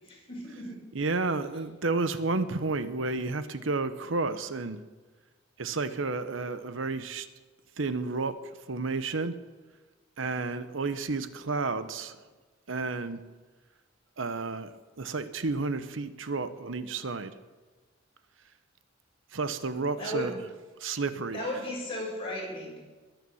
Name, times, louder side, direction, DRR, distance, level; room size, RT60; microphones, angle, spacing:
voice 1, 0.0-0.8 20.0-20.3 21.3-22.8, left 1 dB, 30° left, -4 dB, 7.5 m, -35 dB
voice 2, 0.9-4.8 5.6-7.3 7.8-8.3 8.7-9.3 10.2-12.2 12.7-13.2 14.2-14.7 15.0-17.3 19.3-20.3 20.8-21.4, right 3 dB, 70° right, 12 dB, 0.9 m, -31 dB
22.0 x 9.2 x 7.1 m, 1.3 s
head